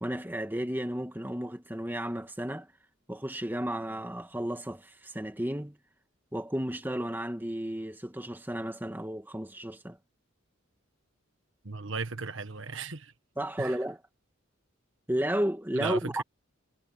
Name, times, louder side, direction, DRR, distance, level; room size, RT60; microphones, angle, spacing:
voice 1, 0.0-2.7 3.1-5.8 6.3-10.0 13.4-14.0 15.1-16.2, right 1 dB, 10° right, 1.5 m, -33 dB
voice 2, 11.6-13.1 13.6-13.8 15.7-16.2, right 4 dB, 65° right, 1.5 m, -36 dB
head